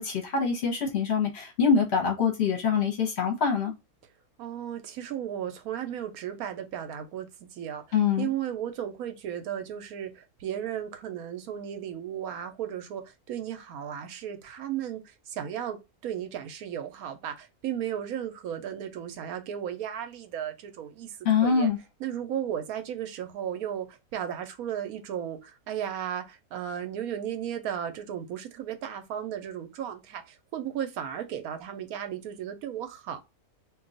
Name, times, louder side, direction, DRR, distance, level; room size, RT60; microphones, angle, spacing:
voice 1, 0.0-3.7 7.9-8.3 21.2-21.8, left 6 dB, 55° left, 1.0 m, -24 dB
voice 2, 4.4-7.8 8.2-21.7 22.0-33.2, right 9 dB, 80° right, 1.1 m, -35 dB
2.5 x 2.3 x 3.8 m
omnidirectional pair, 1.5 m